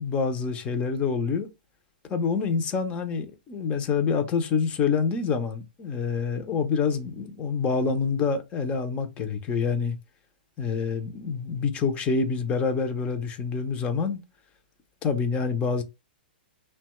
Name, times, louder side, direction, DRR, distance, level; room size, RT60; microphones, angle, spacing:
voice 1, 0.0-1.5 2.1-10.0 10.6-14.2 15.0-15.8, left 5 dB, 20° left, 0.6 m, -27 dB
2.9 x 2.2 x 2.9 m
hypercardioid pair, 150°, 6 cm